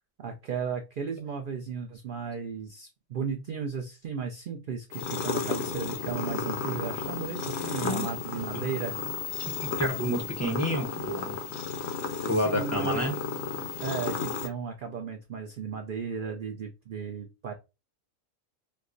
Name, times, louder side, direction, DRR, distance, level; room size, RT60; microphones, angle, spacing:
voice 1, 0.2-9.0 12.3-13.0 13.8-17.5, right 6 dB, 65° right, 4 dB, 0.5 m, -35 dB
sound 1, 4.9-14.5, left 5 dB, 65° left, 0.8 m, -33 dB
voice 2, 9.4-11.4 12.3-13.2, equal, 20° left, 1 dB, 0.4 m, -29 dB
4.4 x 2.1 x 2.5 m, 0.27 s
omnidirectional pair, 1.4 m